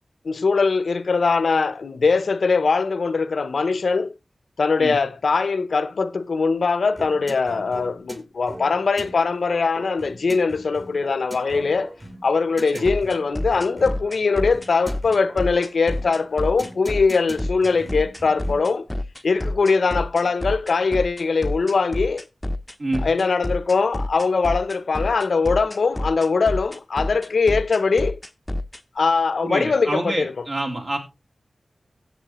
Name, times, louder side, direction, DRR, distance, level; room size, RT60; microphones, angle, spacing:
voice 1, 0.2-4.1 4.6-11.9 12.2-18.9 19.2-22.2 23.0-28.2 29.0-30.3, left 4 dB, 85° left, 0.6 m, -21 dB
sound 1, 7.0-18.8, right 1 dB, 25° right, 1.4 m, -41 dB
sound 2, 12.8-28.8, left 1 dB, 15° left, 0.6 m, -28 dB
voice 2, 29.4-31.0, right 2 dB, 65° right, 2.9 m, -27 dB
16.0 x 7.4 x 3.0 m
wide cardioid pair, 65°, 0 cm